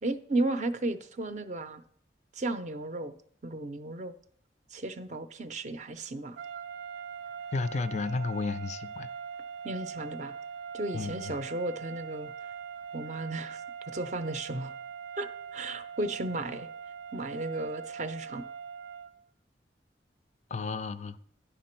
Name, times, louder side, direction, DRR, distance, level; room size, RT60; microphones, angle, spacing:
voice 1, 0.0-1.8 2.3-3.1 3.4-4.1 4.7-6.4 9.6-10.3 10.7-12.5 12.9-13.6 13.9-14.7 15.2-16.7 17.1-18.4, right 2 dB, 40° right, 0.5 m, -34 dB
sound 1, 6.4-19.2, right 7 dB, 90° right, 0.5 m, -42 dB
voice 2, 7.5-9.1 10.9-11.4 20.5-21.2, left 4 dB, 40° left, 0.3 m, -32 dB
10.0 x 5.9 x 4.4 m
head